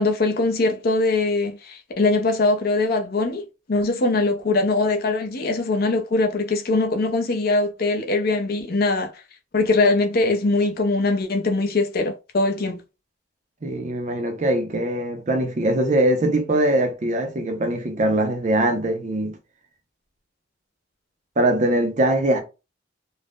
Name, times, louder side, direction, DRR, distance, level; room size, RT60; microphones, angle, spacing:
voice 1, 0.0-9.1 9.5-12.8, left 2 dB, 50° left, 0.5 m, -22 dB
voice 2, 13.6-19.4 21.4-22.4, right 1 dB, 35° right, 0.5 m, -22 dB
2.5 x 2.0 x 3.4 m
head